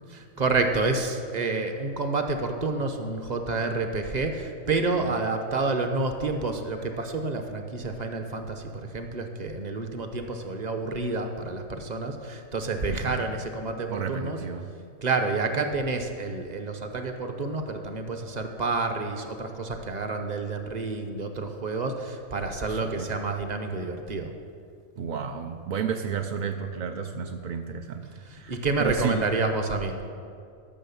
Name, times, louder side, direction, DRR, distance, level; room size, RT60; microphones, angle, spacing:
voice 1, 0.1-14.4 15.0-24.3 28.3-30.0, right 3 dB, 40° right, 6 dB, 0.9 m, -29 dB
voice 2, 12.8-13.2 13.9-14.7 22.7-23.1 25.0-28.1 28.3-29.3, right 6 dB, 60° right, 5 dB, 0.5 m, -32 dB
12.5 x 6.3 x 7.0 m, 2.3 s
omnidirectional pair, 1.3 m